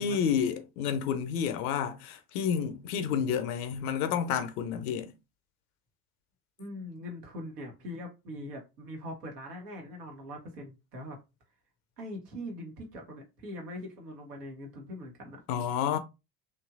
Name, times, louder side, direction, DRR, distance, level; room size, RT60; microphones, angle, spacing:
voice 1, 0.0-5.1 15.5-16.0, left 8 dB, 65° left, 0.7 m, -30 dB
voice 2, 6.6-11.2 12.0-15.4, left 1 dB, 75° right, 1.2 m, -42 dB
2.9 x 2.6 x 2.4 m
figure-of-eight pair, 55°, 48 cm